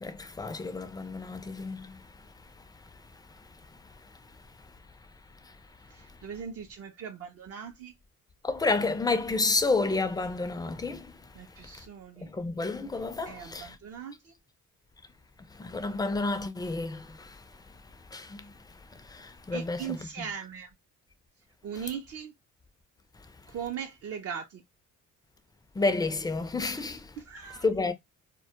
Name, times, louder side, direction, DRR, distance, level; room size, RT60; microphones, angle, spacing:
voice 1, 0.0-1.8 8.4-11.0 12.4-13.7 15.6-17.0 18.1-18.4 19.5-20.0 25.8-27.0 27.6-27.9, left 3 dB, 15° left, 0.4 m, -29 dB
voice 2, 5.9-7.9 11.3-12.3 13.3-14.3 19.5-20.7 21.6-22.3 23.5-24.6 27.2-27.7, right 8 dB, 50° right, 0.5 m, -39 dB
2.2 x 2.1 x 2.7 m
cardioid pair, 80°, 31 cm